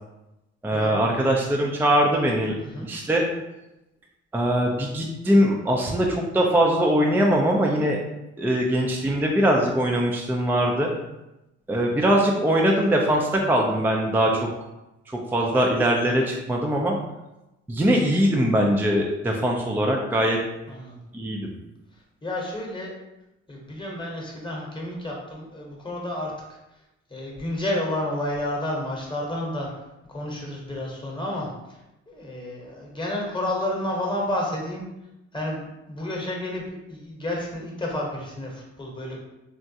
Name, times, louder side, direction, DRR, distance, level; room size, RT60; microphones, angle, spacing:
voice 1, 0.6-2.5 2.8-3.2 4.3-8.0 8.4-10.9 11.7-14.4 15.3-17.0 17.7-20.4 21.1-21.5, equal, 5° right, 0 dB, 0.4 m, -21 dB
voice 2, 2.6-2.9 20.7-21.0 22.2-22.9 23.5-26.3 27.1-29.7 30.1-31.8 32.1-34.8 35.3-39.2, left 1 dB, 15° left, -2 dB, 1.0 m, -30 dB
3.6 x 2.1 x 2.7 m, 0.95 s
supercardioid pair, 70°, 29 cm